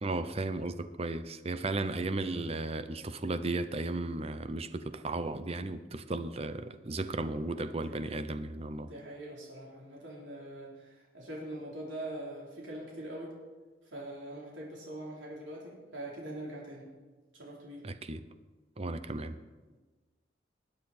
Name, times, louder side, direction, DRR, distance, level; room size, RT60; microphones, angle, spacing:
voice 1, 0.0-8.9 17.8-18.2 18.8-19.4, right 2 dB, 35° right, 12 dB, 0.7 m, -35 dB
voice 2, 7.7-8.1 8.8-13.3 13.9-16.9 17.3-17.8 19.1-19.2, right 1 dB, 85° right, -4 dB, 3.8 m, -43 dB
20.0 x 8.9 x 4.3 m, 1.3 s
head